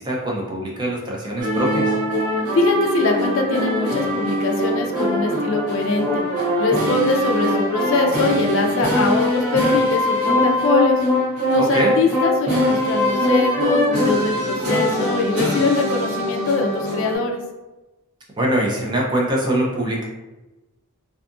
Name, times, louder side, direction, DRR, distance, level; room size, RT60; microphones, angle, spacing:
voice 1, 0.0-2.0 11.6-11.9 18.4-20.0, right 1 dB, 20° right, -2 dB, 0.3 m, -23 dB
sound 1, 1.4-17.2, left 1 dB, 80° right, 1.0 m, -22 dB
voice 2, 2.5-6.2 6.6-11.0 11.5-17.4, left 3 dB, 60° left, 3 dB, 0.3 m, -22 dB
2.6 x 2.3 x 2.4 m, 1.1 s
head